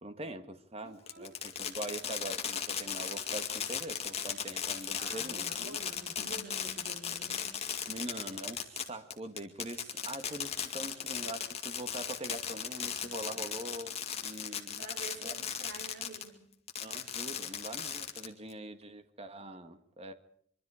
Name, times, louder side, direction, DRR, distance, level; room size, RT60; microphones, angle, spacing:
voice 1, 0.0-5.8 6.2-6.3 7.9-14.8 15.2-15.3 16.8-20.1, right 1 dB, 30° right, 1.7 m, -43 dB
voice 2, 0.8-1.4 5.0-7.5 12.9-13.0 14.8-16.4, right 2 dB, 45° right, 4.3 m, -48 dB
Fireworks, 1.1-16.3 16.7-18.5, left 8 dB, 30° left, 2.3 m, -36 dB
24.5 x 24.0 x 5.0 m
head